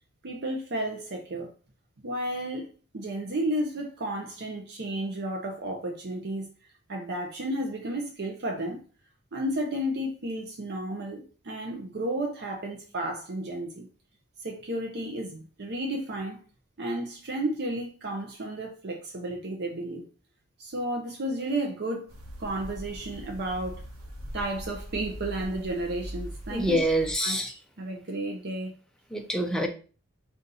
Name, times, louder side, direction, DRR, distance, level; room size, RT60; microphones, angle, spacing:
voice 1, 0.2-1.5 2.0-2.7 2.9-6.5 6.9-8.8 9.3-13.9 14.4-16.4 16.8-20.0 20.6-22.1 22.4-23.8 24.3-26.8 27.2-28.7, right 1 dB, 50° right, 0.7 m, -32 dB
sound 1, 22.1-27.1, equal, 75° right, 1.1 m, -41 dB
voice 2, 26.5-27.5 29.1-29.7, right 1 dB, 5° left, 0.6 m, -26 dB
4.1 x 2.5 x 3.9 m
head